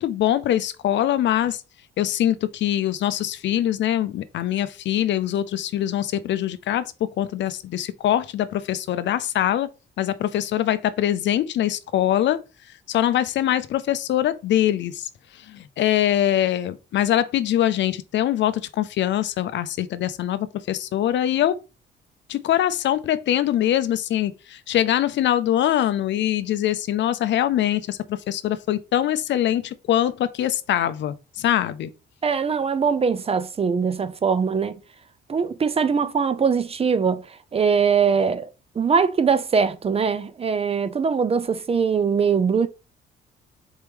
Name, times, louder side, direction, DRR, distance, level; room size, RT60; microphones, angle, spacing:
voice 1, 0.0-1.6 2.0-9.7 10.0-12.4 12.9-15.1 15.5-21.5 22.3-31.9, left 12 dB, 65° left, 0.5 m, -23 dB
voice 2, 32.2-34.8 35.3-37.2 37.5-38.5 38.8-42.7, right 6 dB, 30° right, 0.5 m, -21 dB
4.4 x 3.0 x 3.4 m
cardioid pair, 90°, 20 cm